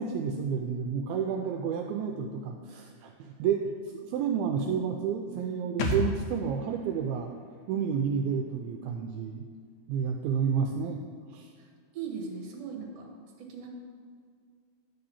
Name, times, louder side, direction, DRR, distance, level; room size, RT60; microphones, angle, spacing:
voice 1, 0.0-3.6 3.9-7.3 7.7-9.5 9.9-11.0 11.3-11.5, right 7 dB, 80° right, 3 dB, 2.2 m, -30 dB
sound 1, 5.8-9.3 9.6-9.7, left 2 dB, 90° left, 1.6 m, -36 dB
voice 2, 11.9-13.1 13.4-13.7, right 5 dB, 55° right, 0 dB, 2.0 m, -38 dB
11.0 x 3.9 x 7.0 m, 2.1 s
omnidirectional pair, 4.5 m